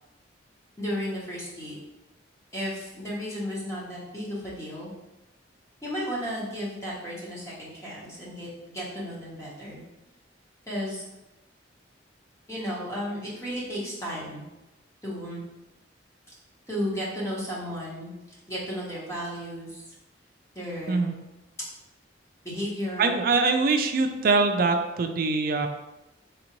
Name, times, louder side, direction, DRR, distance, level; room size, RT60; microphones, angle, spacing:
voice 1, 0.8-1.8 2.5-4.9 5.8-9.8 10.7-11.0 12.5-14.4 15.0-15.4 16.3-16.4 16.7-19.8 20.5-21.1 22.4-23.1, equal, 15° left, -7 dB, 1.0 m, -34 dB
voice 2, 23.0-25.7, right 3 dB, 50° right, 6 dB, 0.4 m, -23 dB
3.9 x 3.5 x 3.0 m, 0.99 s
head